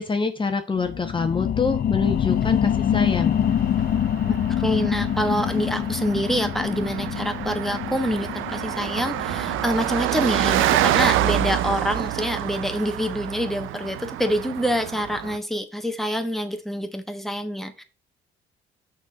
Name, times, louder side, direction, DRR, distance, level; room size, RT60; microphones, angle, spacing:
voice 1, 0.0-3.4, left 4 dB, 25° left, 6 dB, 1.1 m, -25 dB
sound 1, 0.8-11.9 12.3-12.4, left 9 dB, 45° left, 0.5 m, -26 dB
Car passing by, 2.2-15.4, right 13 dB, 90° right, 0.5 m, -27 dB
voice 2, 4.3-17.8, equal, ahead, 7 dB, 1.3 m, -26 dB
6.1 x 4.4 x 6.3 m, 0.33 s
cardioid pair, 90°, 20 cm